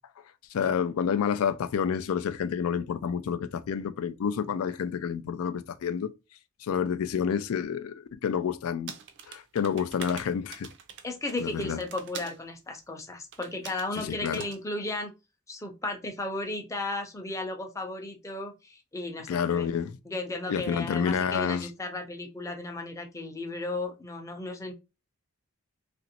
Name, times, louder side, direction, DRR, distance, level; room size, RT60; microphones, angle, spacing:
voice 1, 0.5-6.1 6.6-8.9 9.3-10.7 11.4-11.8 14.0-14.4 19.3-20.0 20.5-21.7, left 7 dB, 85° left, 0.4 m, -29 dB
sound 1, 8.9-12.4 13.3-13.9 14.3-14.6, right 7 dB, 55° right, 0.5 m, -44 dB
voice 2, 11.0-15.1 15.5-19.7 20.1-24.7, left 2 dB, 15° left, 0.5 m, -35 dB
2.9 x 2.5 x 2.8 m
head